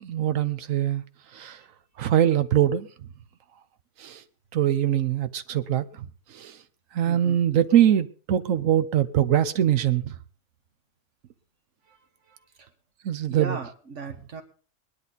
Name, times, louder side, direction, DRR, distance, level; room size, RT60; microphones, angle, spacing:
voice 1, 0.0-1.0 1.4-1.6 2.0-2.9 4.0-4.2 4.5-5.8 6.4-6.5 6.9-10.1 13.0-13.6, right 11 dB, 85° right, 1.2 m, -22 dB
voice 2, 7.1-7.4 11.9-12.0 12.3-12.7 13.3-14.4, right 5 dB, 65° right, 1.8 m, -37 dB
20.0 x 11.0 x 4.0 m
omnidirectional pair, 1.3 m